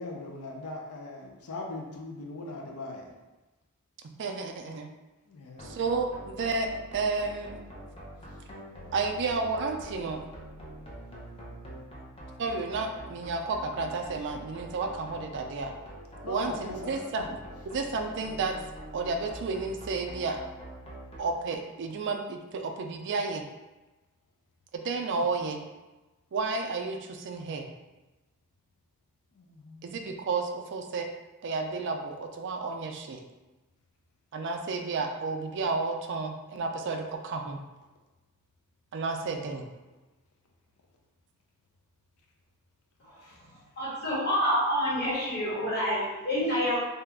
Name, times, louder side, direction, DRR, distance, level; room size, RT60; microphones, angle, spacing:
voice 1, 0.0-3.1 5.3-5.8 8.3-8.4 16.2-17.3 29.3-29.8 43.2-43.4, left 2 dB, 70° left, 1 dB, 0.5 m, -40 dB
voice 2, 4.2-4.9 5.6-7.6 8.9-10.2 12.4-15.8 16.3-17.3 17.7-18.5 18.9-20.4 21.2-23.4 24.7-25.6 26.3-27.7 29.8-31.1 31.4-33.2 34.3-37.6 38.9-39.7, right 4 dB, 55° right, 4 dB, 0.4 m, -31 dB
sound 1, 5.6-21.2, equal, 25° left, 0.6 m, -45 dB
voice 3, 43.8-46.8, equal, 50° left, -7 dB, 1.2 m, -27 dB
2.8 x 2.3 x 3.4 m, 1.1 s
head